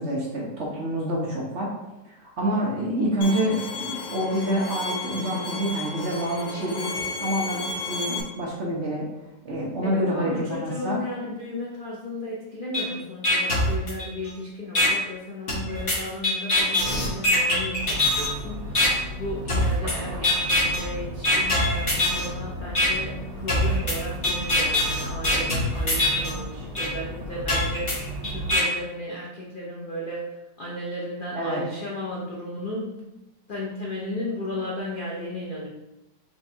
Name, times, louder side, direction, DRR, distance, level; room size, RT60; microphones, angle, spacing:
voice 1, 0.0-1.7 2.2-6.9 7.2-9.1 9.4-11.0 31.3-31.6, equal, 55° right, -3 dB, 0.8 m, -27 dB
Bowed string instrument, 3.2-8.2, left 3 dB, 70° left, 1.2 m, -33 dB
voice 2, 9.8-33.0 33.5-35.7, left 1 dB, 85° left, -4 dB, 0.4 m, -34 dB
sound 1, 12.7-12.8 13.2-14.3 14.7-14.9 15.5-18.3 18.7-18.9 19.5-19.9 20.2-20.8 21.2-22.3 22.7-22.9 23.5-26.3 26.7-26.9 27.5-28.6, left 1 dB, 40° left, 1.1 m, -23 dB
sound 2, 17.8-28.5, right 1 dB, 85° right, 1.7 m, -35 dB
4.7 x 3.4 x 2.7 m, 0.96 s
omnidirectional pair, 1.9 m